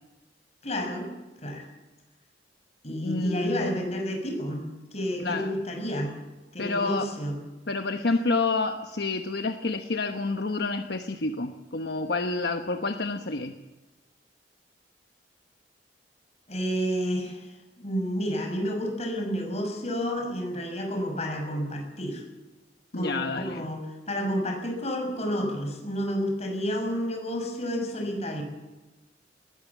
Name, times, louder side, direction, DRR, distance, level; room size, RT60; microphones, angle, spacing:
voice 1, 0.6-1.1 1.4-1.7 2.8-6.2 6.5-7.3 16.5-22.2 22.9-28.4, equal, 40° left, 3 dB, 6.2 m, -30 dB
voice 2, 3.0-3.8 5.2-5.6 6.6-7.1 7.7-13.6 22.9-23.7, left 3 dB, 65° left, 6 dB, 1.1 m, -29 dB
20.5 x 18.0 x 7.3 m, 1.1 s
head